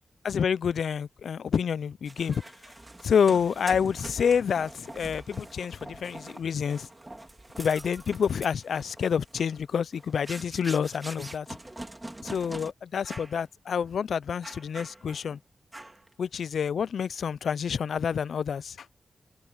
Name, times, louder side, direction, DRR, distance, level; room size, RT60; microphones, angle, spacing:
voice 1, 0.2-2.4 3.0-6.9 7.6-11.5 12.2-15.4 16.2-18.9, left 7 dB, 85° left, 0.4 m, -28 dB
sound 1, 2.0-12.7 13.0-13.4 13.8-13.9 14.4-15.3 15.7-16.1, right 1 dB, 15° right, 3.1 m, -44 dB
wide cardioid pair, 135°, 0 cm